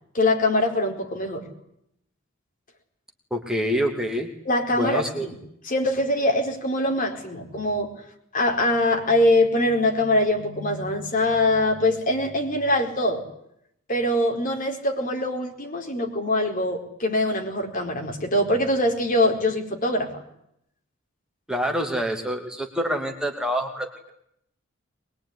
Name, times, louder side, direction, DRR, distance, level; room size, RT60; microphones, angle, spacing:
voice 1, 0.1-1.5 4.4-5.3 5.6-7.9 8.3-13.2 13.9-20.2, left 1 dB, 45° left, 2 dB, 4.7 m, -23 dB
voice 2, 3.3-4.3 4.7-5.3 21.5-24.1, equal, 5° right, 2 dB, 2.6 m, -26 dB
23.0 x 22.0 x 9.9 m, 0.76 s
head